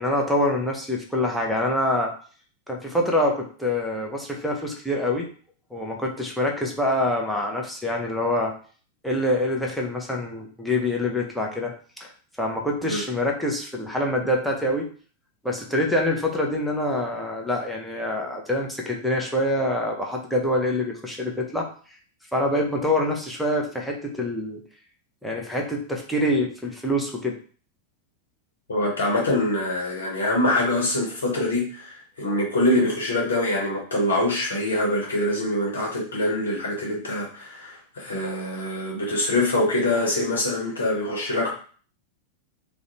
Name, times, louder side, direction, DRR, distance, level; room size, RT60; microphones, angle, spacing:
voice 1, 0.0-2.1 2.7-5.3 5.7-8.5 9.0-11.7 12.0-12.1 12.4-14.9 15.4-21.7 22.3-24.6 25.2-27.4, left 1 dB, ahead, -2 dB, 0.6 m, -25 dB
voice 2, 28.7-41.5, left 1 dB, 70° left, -2 dB, 0.9 m, -24 dB
2.4 x 2.0 x 2.9 m, 0.42 s
figure-of-eight pair, 90°, 0 cm